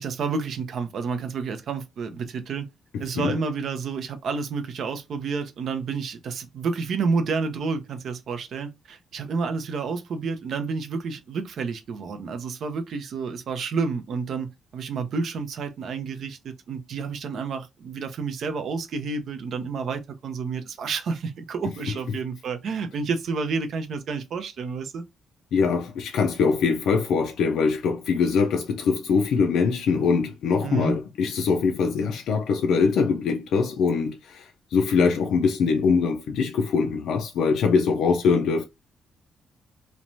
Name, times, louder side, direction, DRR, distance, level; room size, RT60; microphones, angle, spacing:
voice 1, 0.0-2.7 3.0-25.0 30.6-31.0, right 5 dB, 50° right, 0.5 m, -30 dB
voice 2, 2.9-3.4 25.5-38.7, left 5 dB, 70° left, 0.4 m, -23 dB
3.0 x 2.1 x 2.6 m
cardioid pair, 170°, 0 cm